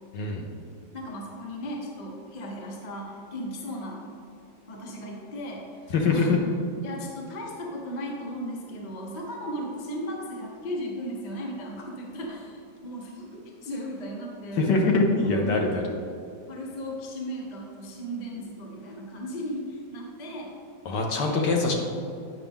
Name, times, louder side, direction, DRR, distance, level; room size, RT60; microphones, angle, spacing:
voice 1, 0.1-0.5 5.9-6.4 14.6-15.8 20.8-21.7, left 3 dB, 70° left, 1 dB, 1.3 m, -23 dB
voice 2, 0.9-4.0 4.7-6.5 6.8-14.7 15.4-15.7 16.5-20.5 21.2-21.5, equal, 35° left, -1 dB, 0.7 m, -36 dB
8.6 x 5.3 x 3.6 m, 2.5 s
omnidirectional pair, 2.1 m